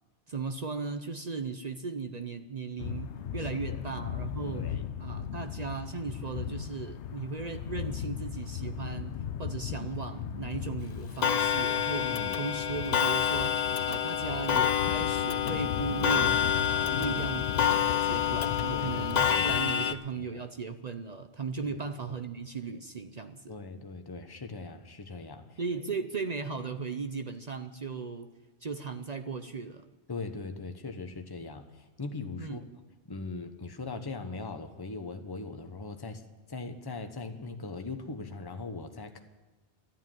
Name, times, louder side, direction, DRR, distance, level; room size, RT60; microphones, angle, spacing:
voice 1, 0.3-4.6 5.0-13.6 13.9-16.4 16.7-23.5 25.6-28.3 28.6-29.8 32.4-32.7, right 5 dB, 45° right, 8 dB, 0.7 m, -37 dB
sound 1, 2.8-19.7, left 9 dB, 80° left, 0.9 m, -38 dB
voice 2, 3.4-3.8 4.4-4.8 12.0-12.4 16.9-17.2 18.7-19.5 19.9-20.4 21.6-21.8 22.0-22.2 23.5-25.6 30.1-32.6 33.1-36.2 36.5-39.2, left 3 dB, 20° left, 6 dB, 1.0 m, -40 dB
Clock, 11.2-19.9, left 8 dB, 50° left, 0.5 m, -28 dB
13.5 x 10.0 x 9.3 m, 1.2 s
omnidirectional pair, 1.2 m